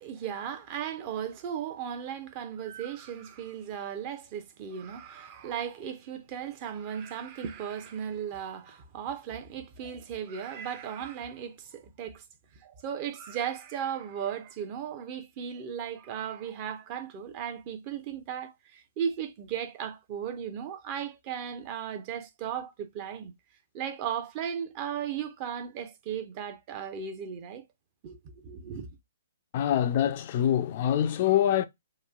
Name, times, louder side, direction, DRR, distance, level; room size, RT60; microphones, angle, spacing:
voice 1, 0.0-12.2 12.6-23.3 23.7-27.6 28.0-28.9, right 8 dB, 35° right, 0.6 m, -36 dB
voice 2, 29.5-31.6, left 10 dB, 45° left, 0.3 m, -25 dB
2.9 x 2.4 x 2.3 m
hypercardioid pair, 135°, 0 cm